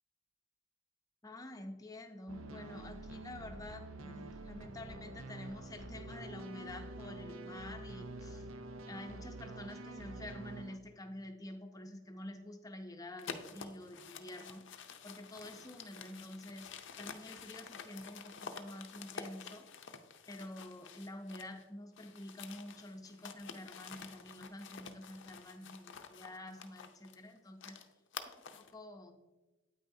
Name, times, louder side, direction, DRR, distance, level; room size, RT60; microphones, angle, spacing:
voice 1, 1.2-8.4 8.9-14.6 15.0-16.7 17.0-19.7 20.3-27.8 28.5-29.2, left 1 dB, 15° left, 6 dB, 0.7 m, -48 dB
sound 1, 2.3-10.8, right 2 dB, 75° right, 0.6 m, -47 dB
sound 2, 13.2-21.6 21.9-28.7, left 6 dB, 60° left, 0.6 m, -49 dB
8.9 x 8.9 x 2.7 m, 1.1 s
head